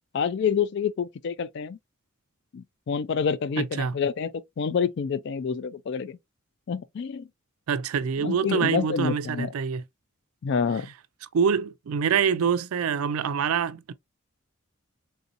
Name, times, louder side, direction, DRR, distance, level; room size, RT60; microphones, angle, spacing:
voice 1, 0.1-1.8 2.5-6.2 6.7-7.3 8.2-9.5 10.4-10.9, left 6 dB, 55° left, 0.3 m, -28 dB
voice 2, 3.6-3.9 7.7-9.8 11.3-13.9, right 6 dB, 80° right, 0.4 m, -25 dB
3.6 x 2.7 x 2.5 m
head